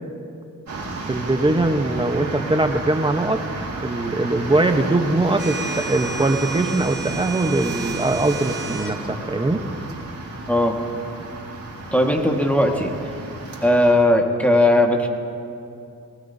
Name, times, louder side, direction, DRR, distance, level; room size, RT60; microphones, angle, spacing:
sound 1, 0.7-13.9, right 3 dB, 50° right, 3.5 m, -33 dB
voice 1, 1.1-3.4 3.8-9.6, right 2 dB, 15° right, 6 dB, 1.0 m, -21 dB
sound 2, 5.4-9.0, right 5 dB, 30° right, 1.5 m, -33 dB
voice 2, 11.9-12.9 13.6-15.1, left 1 dB, 5° left, 1 dB, 1.7 m, -17 dB
19.5 x 19.0 x 2.8 m, 2.6 s
cardioid pair, 75°, 34 cm